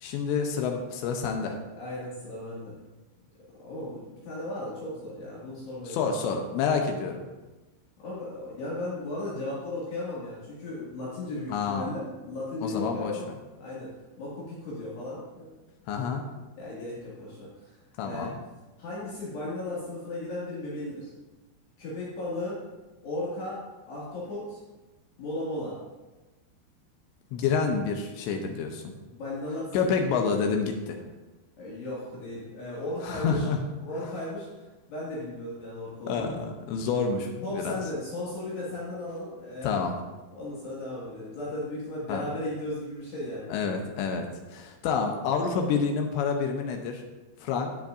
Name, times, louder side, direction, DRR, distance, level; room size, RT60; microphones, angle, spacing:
voice 1, 0.0-1.6 5.9-7.2 11.5-11.9 12.6-13.1 15.9-16.3 18.0-18.3 27.3-28.9 29.7-31.0 33.0-33.6 36.1-37.8 39.6-40.0 42.1-42.3 43.5-47.0 47.4-47.7, left 5 dB, 80° left, 4 dB, 2.7 m, -28 dB
voice 2, 1.7-2.8 3.6-6.1 8.0-13.3 13.6-13.9 14.2-15.6 16.6-18.3 18.8-21.1 21.8-22.6 23.0-23.6 23.9-24.6 25.2-25.8 29.0-30.1 31.6-33.5 33.8-34.5 34.9-36.4 37.4-39.8 40.3-43.5, left 1 dB, 60° left, -8 dB, 4.0 m, -36 dB
12.5 x 8.4 x 2.6 m, 1.1 s
omnidirectional pair, 5.8 m